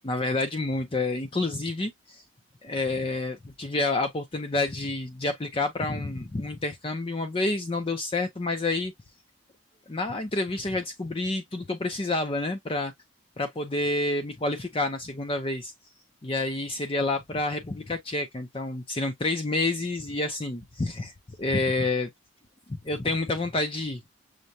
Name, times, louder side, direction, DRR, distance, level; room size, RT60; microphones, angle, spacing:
voice 1, 0.0-2.2 2.6-8.9 9.9-12.9 13.4-15.7 16.2-21.1 21.4-22.1 22.7-24.0, left 2 dB, 25° left, 0.5 m, -28 dB
6.4 x 2.2 x 2.8 m
head